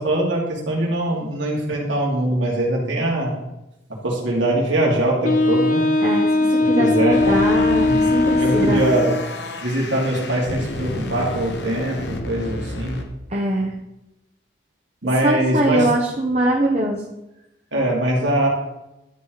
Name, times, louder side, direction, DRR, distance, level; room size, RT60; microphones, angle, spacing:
voice 1, 0.0-3.3 4.0-5.8 6.8-7.2 7.8-9.1 9.6-13.0 15.0-15.9 17.7-18.5, right 1 dB, 85° right, -3 dB, 2.7 m, -22 dB
Wind instrument woodwind instrument, 5.2-9.3, left 2 dB, 45° left, 0.5 m, -19 dB
voice 2, 6.0-6.3 6.6-8.8 13.3-13.7 15.2-17.0, right 1 dB, 35° right, -3 dB, 1.0 m, -22 dB
sound 1, 7.1-13.0, left 2 dB, 65° left, 1.0 m, -31 dB
12.5 x 4.9 x 4.0 m, 0.90 s
head